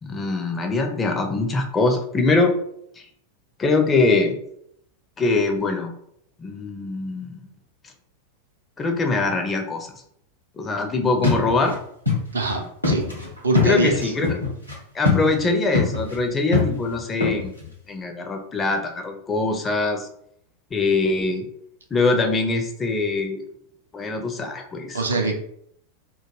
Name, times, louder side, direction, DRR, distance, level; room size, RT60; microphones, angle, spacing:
voice 1, 0.0-2.5 3.6-4.4 5.2-5.9 6.4-7.4 8.8-9.9 10.6-11.8 13.6-14.4 14.9-17.5 17.9-20.1 20.7-21.4 21.9-23.4 23.9-25.0 25.3-25.4, left 3 dB, 20° left, 4 dB, 0.4 m, -23 dB
sound 1, 11.2-11.7 12.1-12.2 12.5-12.6 12.8-14.7 15.0-15.4 15.7-16.2 16.5-17.7, left 4 dB, 85° left, 0.7 m, -22 dB
voice 2, 12.3-13.1 13.4-14.1 24.9-25.3, right 3 dB, 75° right, 3 dB, 0.5 m, -23 dB
2.3 x 2.2 x 3.1 m, 0.70 s
figure-of-eight pair, 90°, 0 cm